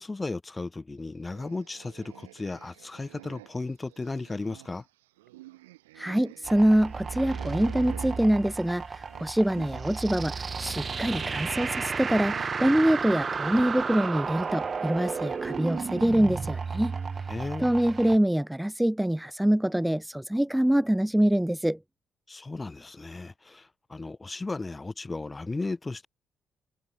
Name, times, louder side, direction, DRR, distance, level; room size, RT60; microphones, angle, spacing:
voice 1, 0.0-4.8 17.3-17.7 22.3-26.1, left 3 dB, 25° left, 1.4 m, -35 dB
sound 1, 1.2-9.9 10.2-17.0, right 18 dB, 75° right, 2.5 m, -51 dB
voice 2, 6.0-17.0 17.6-21.8, right 1 dB, 5° right, 1.2 m, -25 dB
sound 2, 6.4-18.2, right 5 dB, 35° right, 0.6 m, -33 dB
figure-of-eight pair, 40°, 0 cm